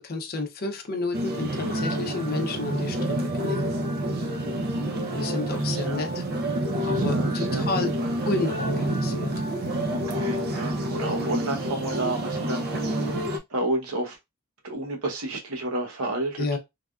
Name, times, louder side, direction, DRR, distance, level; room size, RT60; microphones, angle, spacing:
voice 1, 0.0-3.0 3.4-3.7 5.2-6.2 6.8-7.9 8.3-9.3 16.4-16.6, left 3 dB, 45° left, 0.6 m, -30 dB
sound 1, 1.1-13.4, right 1 dB, 45° right, 0.5 m, -28 dB
voice 2, 4.3-4.6 5.5-6.0 6.7-8.1 9.9-13.2 13.5-14.2 14.6-16.6, right 2 dB, 85° right, 0.9 m, -31 dB
3.3 x 2.4 x 2.3 m
head